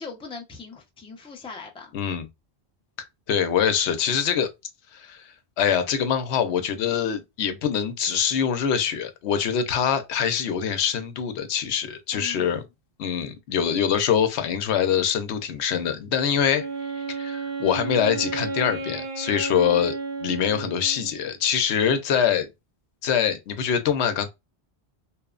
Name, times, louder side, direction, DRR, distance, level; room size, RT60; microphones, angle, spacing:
voice 1, 0.0-1.9 12.1-12.5, left 5 dB, 10° left, 0.4 m, -40 dB
voice 2, 1.9-2.3 3.0-4.5 4.9-5.3 5.6-12.6 13.0-16.7 17.1-19.9 20.2-22.5 23.0-24.3, left 8 dB, 85° left, 0.9 m, -24 dB
Wind instrument woodwind instrument, 16.5-21.3, right 3 dB, 55° right, 0.7 m, -32 dB
2.9 x 2.0 x 2.3 m
omnidirectional pair, 1.1 m